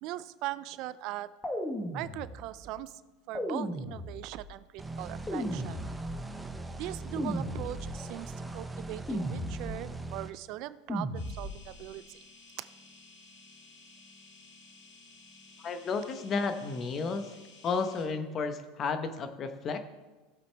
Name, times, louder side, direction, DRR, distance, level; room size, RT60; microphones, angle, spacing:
voice 1, 0.0-1.3 1.9-3.0 3.3-5.8 6.8-12.2 12.6-12.7, right 15 dB, 55° right, 16 dB, 0.4 m, -40 dB
sound 1, 1.4-2.7 3.4-4.5 5.3-6.4 7.2-8.2 9.1-10.0 10.9-11.8, equal, 10° left, 1.3 m, -36 dB
sound 2, 4.8-10.3, right 2 dB, 10° right, 0.8 m, -40 dB
sound 3, 11.1-18.0, left 3 dB, 75° left, 3.1 m, -55 dB
voice 2, 15.6-17.4 17.6-19.8, left 4 dB, 35° left, 8 dB, 1.0 m, -32 dB
17.0 x 7.7 x 3.4 m, 1.2 s
supercardioid pair, 130°, 0 cm